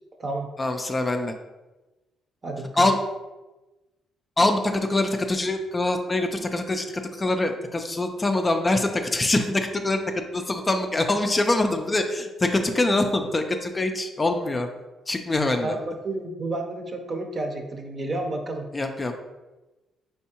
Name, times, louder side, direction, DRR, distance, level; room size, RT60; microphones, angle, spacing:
voice 1, 0.6-1.3 2.8-3.0 4.4-6.8 7.1-10.0 10.3-14.7 15.1-15.7 18.7-19.1, left 2 dB, 25° left, 5 dB, 0.4 m, -24 dB
voice 2, 2.4-2.9 15.6-18.6, right 2 dB, 35° right, 4 dB, 0.7 m, -31 dB
4.5 x 3.5 x 2.9 m, 1.1 s
cardioid pair, 90°, 0 cm